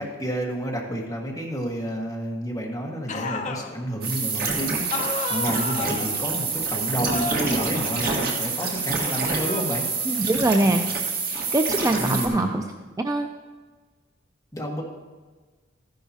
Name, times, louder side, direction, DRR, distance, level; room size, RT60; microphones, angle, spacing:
voice 1, 0.0-10.3 12.0-12.6 14.5-14.8, equal, 15° left, -2 dB, 1.5 m, -30 dB
sound 1, 3.1-3.7 4.9-6.3 7.1-8.6 9.0-10.8 11.7-12.8, left 4 dB, 35° left, 0.7 m, -34 dB
sound 2, 4.0-12.3, right 4 dB, 50° right, 1.6 m, -27 dB
voice 2, 10.0-11.0 11.3-12.6 13.0-13.3, right 2 dB, 15° right, 5 dB, 0.3 m, -23 dB
13.5 x 10.5 x 2.8 m, 1.4 s
head